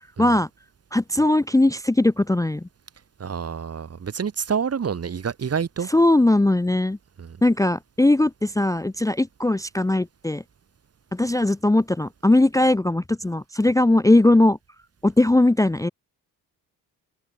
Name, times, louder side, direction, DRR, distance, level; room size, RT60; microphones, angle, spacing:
voice 1, 0.2-0.5 0.9-2.7 5.9-7.0 7.4-10.4 11.1-14.6 15.0-15.9, left 2 dB, 5° left, 0.9 m, -19 dB
voice 2, 3.2-5.9 7.2-7.4, right 6 dB, 30° right, 1.4 m, -28 dB
hypercardioid pair, 45°, 48 cm